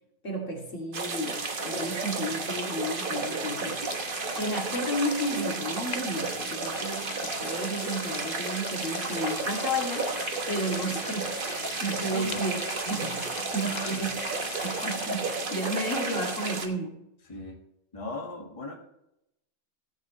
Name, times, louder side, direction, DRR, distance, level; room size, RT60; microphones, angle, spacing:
voice 1, 0.2-1.4 1.6-3.8 4.4-10.1 10.5-12.6 12.8-13.3 13.5-14.1 14.6-16.9, right 1 dB, 70° left, -1 dB, 3.0 m, -32 dB
sound 1, 0.9-16.7, right 3 dB, 45° right, 1.2 m, -32 dB
sound 2, 3.7-15.1, left 6 dB, 45° left, 0.6 m, -42 dB
voice 2, 13.7-14.1 17.2-17.6 17.9-18.7, left 2 dB, 25° left, 1 dB, 1.7 m, -38 dB
17.0 x 8.2 x 3.1 m, 0.82 s
omnidirectional pair, 1.3 m